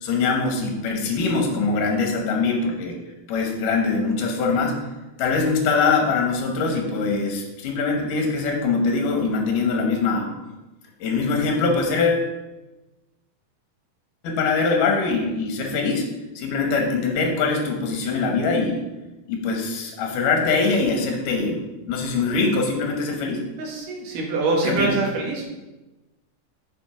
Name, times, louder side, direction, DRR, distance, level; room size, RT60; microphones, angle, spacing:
voice 1, 0.0-3.0 3.3-4.8 5.2-10.3 11.0-12.3 14.2-16.1 16.4-18.8 19.3-21.6 21.9-23.4 24.6-24.9, left 4 dB, 65° left, 2 dB, 2.7 m, -23 dB
voice 2, 23.6-25.4, right 3 dB, 65° right, 0 dB, 2.9 m, -24 dB
7.2 x 6.1 x 5.1 m, 1.1 s
omnidirectional pair, 4.4 m